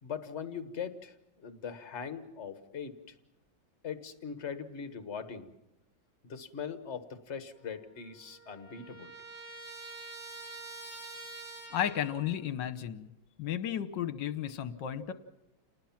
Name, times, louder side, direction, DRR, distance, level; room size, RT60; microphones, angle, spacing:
voice 1, 0.0-3.0 3.8-5.5 6.2-9.1, left 7 dB, 35° left, 9 dB, 1.6 m, -41 dB
Trumpet, 7.6-7.7 7.9-12.3, right 3 dB, 55° right, 3.9 m, -46 dB
voice 2, 11.7-13.1 13.4-15.1, left 10 dB, 65° left, 12 dB, 1.6 m, -33 dB
28.5 x 19.5 x 5.9 m, 0.85 s
omnidirectional pair, 2.2 m